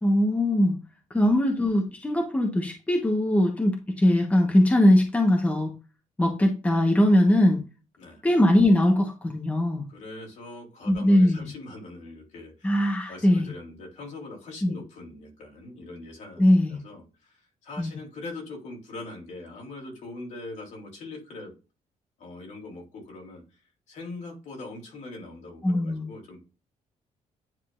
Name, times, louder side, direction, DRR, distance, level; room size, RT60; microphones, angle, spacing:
voice 1, 0.0-0.8 1.1-5.7 6.2-7.6 8.2-9.8 10.9-11.5 12.6-13.5 14.6-14.7 16.4-16.8 17.8-18.0 25.6-26.1, left 1 dB, 10° left, 2 dB, 1.1 m, -21 dB
voice 2, 9.9-12.7 13.1-21.5 22.2-23.4 23.9-26.4, left 2 dB, 65° left, -1 dB, 3.4 m, -42 dB
9.9 x 3.8 x 2.5 m, 0.30 s
cardioid pair, 165°, 13 cm